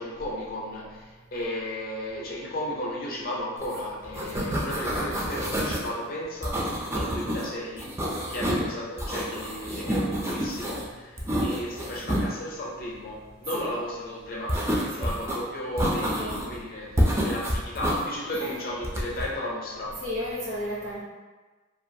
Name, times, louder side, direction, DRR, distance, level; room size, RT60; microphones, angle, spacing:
voice 1, 0.0-20.0, left 1 dB, 45° left, -3 dB, 0.5 m, -34 dB
sound 1, 3.6-5.9 6.4-7.4 7.8-8.7 9.0-10.8 11.2-12.3 14.5-15.4 15.8-16.6 17.0-18.0 18.8-19.3, equal, 15° right, 0.3 m, -28 dB
voice 2, 20.0-21.0, left 1 dB, 75° right, -6 dB, 0.9 m, -33 dB
2.4 x 2.3 x 2.6 m, 1.3 s
head